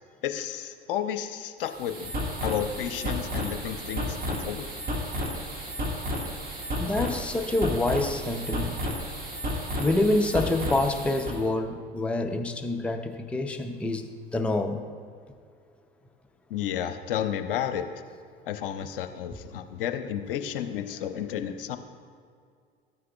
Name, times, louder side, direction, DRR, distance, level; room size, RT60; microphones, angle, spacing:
voice 1, 0.2-2.1 2.4-4.7 16.5-17.9 18.5-21.8, left 9 dB, 70° left, 8 dB, 0.7 m, -32 dB
sound 1, 1.6-11.4, equal, 30° right, 1.8 m, -32 dB
voice 2, 6.8-8.8 9.8-14.8, left 2 dB, 5° left, 5 dB, 0.5 m, -27 dB
13.5 x 9.4 x 2.3 m, 2.1 s
figure-of-eight pair, 75°, 29 cm